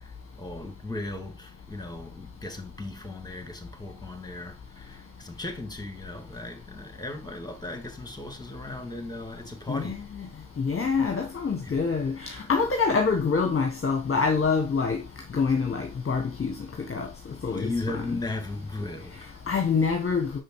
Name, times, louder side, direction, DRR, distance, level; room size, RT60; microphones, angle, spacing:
voice 1, 0.0-10.0 11.6-11.7 17.4-19.2, left 2 dB, 10° left, 2.5 m, -37 dB
voice 2, 9.7-10.3 10.6-15.0 15.3-17.1 17.4-17.7 19.2-20.4, left 5 dB, 25° left, 1.5 m, -26 dB
6.2 x 5.0 x 4.7 m
hypercardioid pair, 55°, 48 cm